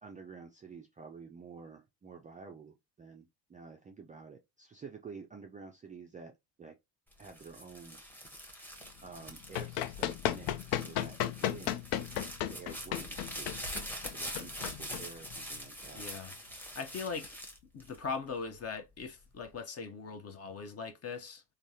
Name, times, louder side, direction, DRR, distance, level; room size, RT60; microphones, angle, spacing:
voice 1, 0.0-6.3 6.6-6.8 7.2-8.0 8.4-8.7 9.0-11.7 12.5-13.5 14.1-16.0, right 5 dB, 20° right, 0.4 m, -50 dB
sound 1, 7.1-18.5 19.0-19.6, equal, 5° left, 0.9 m, -44 dB
Run, 9.2-15.6, left 11 dB, 65° left, 0.5 m, -35 dB
voice 2, 15.9-17.4 17.7-21.4, left 5 dB, 30° left, 0.7 m, -40 dB
3.3 x 2.0 x 2.7 m
hypercardioid pair, 70°, 48 cm